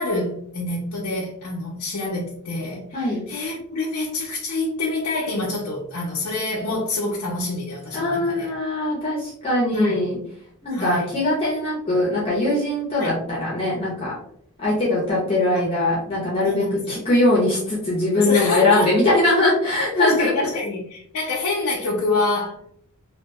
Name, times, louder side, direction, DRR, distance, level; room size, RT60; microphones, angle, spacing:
voice 1, 0.0-8.5 9.7-10.0 10.7-11.1 13.0-13.2 15.5-15.7 16.4-17.0 18.2-18.9 20.0-22.6, left 2 dB, 85° left, -5 dB, 0.6 m, -26 dB
voice 2, 7.9-10.2 10.6-14.1 14.6-20.5, left 2 dB, 25° left, -6 dB, 0.7 m, -21 dB
2.7 x 2.5 x 2.2 m, 0.66 s
head